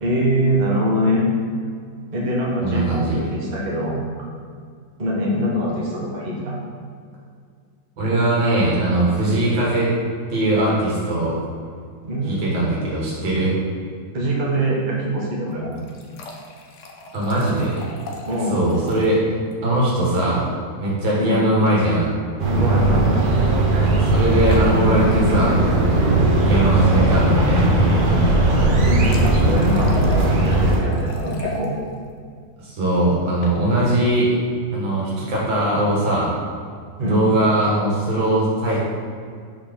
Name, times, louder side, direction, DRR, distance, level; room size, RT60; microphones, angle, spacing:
voice 1, 0.0-1.3 2.1-4.0 5.0-6.6 12.0-12.5 14.1-15.7 18.3-18.6 21.2-21.4 22.5-23.1 28.8-31.7 37.0-37.2, equal, 30° right, -4 dB, 1.0 m, -23 dB
voice 2, 2.6-3.2 8.0-9.9 10.3-11.4 12.3-13.5 17.1-17.9 18.5-19.2 19.6-20.5 20.8-22.2 23.9-27.7 32.6-34.4 34.7-36.3 37.0-38.8, right 1 dB, 80° right, -6 dB, 2.3 m, -20 dB
sound 1, 15.5-19.2 19.5-19.6 19.9-20.0 21.7-22.0 23.0-23.2 24.5-24.8 28.5-31.7 33.1-33.6, left 2 dB, 65° left, 0.7 m, -37 dB
sound 2, 22.4-30.8, right 2 dB, 65° right, 0.5 m, -18 dB
5.3 x 4.1 x 5.2 m, 2.2 s
omnidirectional pair, 2.1 m